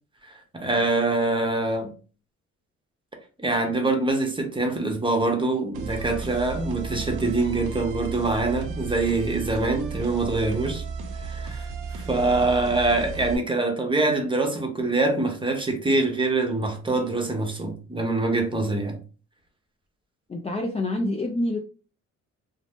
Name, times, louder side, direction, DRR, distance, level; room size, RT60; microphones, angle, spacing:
voice 1, 0.2-1.9 3.4-10.8 11.2-19.0, right 2 dB, 15° right, 0.7 m, -24 dB
sound 1, 5.7-13.4, right 5 dB, 85° right, 0.6 m, -34 dB
voice 2, 20.3-21.6, left 1 dB, 20° left, 0.4 m, -27 dB
2.6 x 2.0 x 3.4 m
cardioid pair, 90°, 30 cm